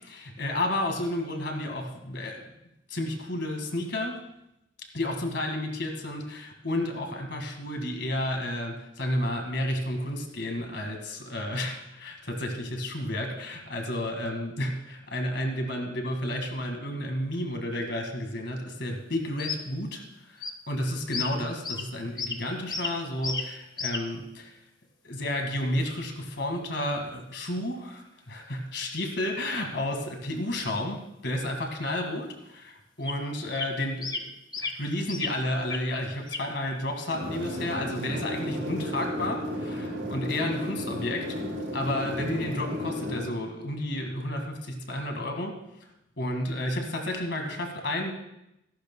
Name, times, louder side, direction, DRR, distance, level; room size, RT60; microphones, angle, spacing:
voice 1, 0.0-2.4 2.9-4.2 4.9-24.6 25.0-31.0 31.2-34.3 34.6-41.4 41.7-45.9 46.2-48.1, left 1 dB, 60° left, 3 dB, 1.9 m, -31 dB
sound 1, 19.4-19.6 20.4-20.5 21.1-21.3 21.6-21.8 22.2-22.4 22.7-22.9 23.2-23.4 23.8-24.0 33.1-33.2 33.5-33.7 34.0-34.2 34.5-34.7 35.1-35.3 35.7-35.8 36.3-36.8 37.2-37.4, left 4 dB, 20° left, 0.8 m, -33 dB
sound 2, 37.1-43.2, equal, 65° right, 5.1 m, -33 dB
25.5 x 11.5 x 2.2 m, 0.86 s
head